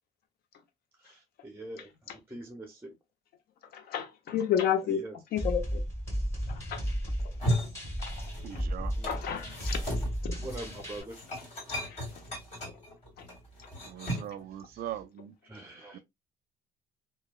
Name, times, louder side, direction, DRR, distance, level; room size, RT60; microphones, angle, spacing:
voice 1, 1.0-2.9 4.9-5.2 9.0-9.1 10.4-11.2 14.0-14.1 14.7-14.8 15.4-16.0, right 2 dB, 15° right, 0.6 m, -44 dB
voice 2, 3.7-5.0 5.3-5.8 6.7-6.8 9.1-9.8 10.2-10.3 11.7-12.0, left 9 dB, 65° left, 0.7 m, -30 dB
sound 1, 5.4-11.0, equal, 20° left, 1.9 m, -34 dB
sound 2, 7.2-8.6 8.9-14.4, equal, 40° left, 2.0 m, -36 dB
voice 3, 8.4-8.9 13.8-15.3 15.9-16.0, right 11 dB, 65° right, 0.4 m, -40 dB
3.0 x 2.3 x 2.2 m
cardioid pair, 110°, 17 cm